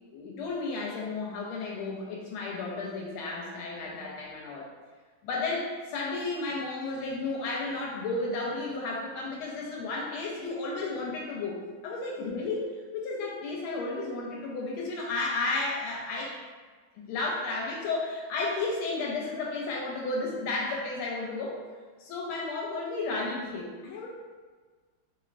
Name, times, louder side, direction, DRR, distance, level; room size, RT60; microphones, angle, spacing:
voice 1, 0.1-4.7 5.2-16.4 17.0-21.6 22.0-24.1, left 3 dB, 85° left, -2 dB, 1.4 m, -33 dB
3.4 x 3.1 x 2.4 m, 1.4 s
omnidirectional pair, 2.3 m